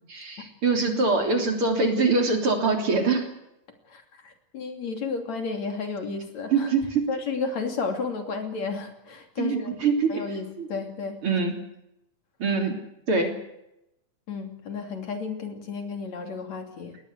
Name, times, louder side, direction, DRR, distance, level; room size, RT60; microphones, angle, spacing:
voice 1, 0.1-3.3 6.5-7.1 9.4-10.2 10.6-10.7 11.2-11.5 12.4-12.8 13.1-13.3, right 4 dB, 45° right, 4 dB, 4.0 m, -24 dB
voice 2, 3.9-6.7 7.1-9.8 10.1-11.2 14.3-17.0, left 4 dB, 60° left, 5 dB, 4.1 m, -32 dB
20.5 x 19.0 x 8.3 m, 0.84 s
omnidirectional pair, 3.6 m